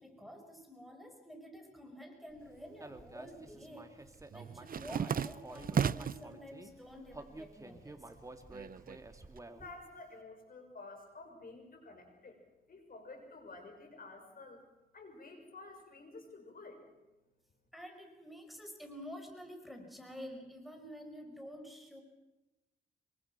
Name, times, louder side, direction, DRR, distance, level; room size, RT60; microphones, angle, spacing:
voice 1, 0.0-4.0 4.3-8.1 17.7-22.0, equal, ahead, 3 dB, 5.3 m, -49 dB
sound 1, 2.4-3.2 3.5-6.3 6.8-7.4 7.7-9.4, right 7 dB, 55° right, 0.7 m, -36 dB
Human voice, 2.8-6.7 7.1-9.8, right 2 dB, 20° right, 2.4 m, -51 dB
voice 2, 9.4-12.4 12.7-14.6 14.9-16.9, left 3 dB, 55° left, 4 dB, 6.8 m, -51 dB
26.0 x 23.5 x 6.0 m, 0.99 s
cardioid pair, 95°, 18 cm